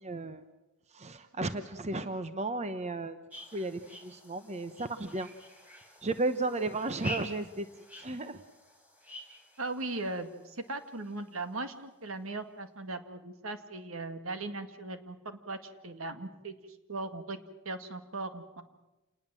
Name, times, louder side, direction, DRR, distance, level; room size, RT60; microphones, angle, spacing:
voice 1, 0.0-0.4 0.9-3.2 3.5-5.3 6.0-7.7 8.0-8.4, right 2 dB, 30° right, 10 dB, 0.9 m, -34 dB
sound 1, 3.3-11.5, left 1 dB, 5° right, 4.3 m, -48 dB
voice 2, 9.6-16.6 16.9-17.4 17.7-18.6, right 2 dB, 70° right, 8 dB, 2.0 m, -38 dB
28.0 x 20.0 x 7.7 m, 1.0 s
head